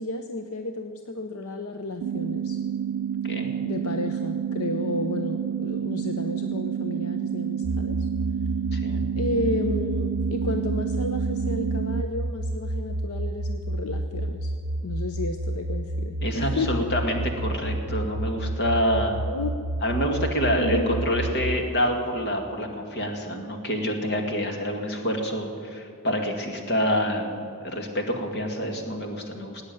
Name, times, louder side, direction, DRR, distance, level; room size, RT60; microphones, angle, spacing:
voice 1, 0.0-2.6 3.6-8.1 9.2-14.5 14.8-16.9 19.3-19.5 20.6-21.0, left 2 dB, 75° left, 7 dB, 0.8 m, -32 dB
sound 1, 2.0-12.0, right 8 dB, 90° right, 0.3 m, -29 dB
sound 2, 7.6-21.6, right 1 dB, 60° right, 0.7 m, -30 dB
voice 2, 8.7-9.1 16.2-19.2 19.8-29.6, equal, 50° left, 3 dB, 2.1 m, -27 dB
17.5 x 9.1 x 9.2 m, 2.3 s
head